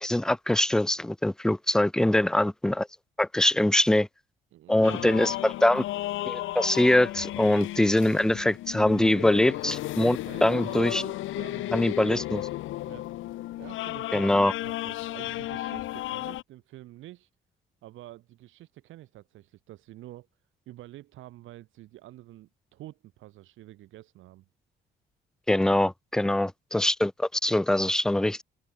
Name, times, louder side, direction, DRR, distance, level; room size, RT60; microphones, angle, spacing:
voice 1, 0.0-2.9 3.2-4.1 4.7-5.8 6.3-11.0 11.7-12.5 14.1-14.5 25.5-28.4, left 1 dB, 5° left, 0.3 m, -23 dB
voice 2, 4.5-5.4 10.2-11.9 12.8-13.1 13.6-17.3 17.8-20.3 20.7-24.5, right 15 dB, 90° right, 2.7 m, -47 dB
sound 1, 4.8-16.4, left 16 dB, 80° left, 0.7 m, -34 dB
open air
cardioid pair, 90°, 20 cm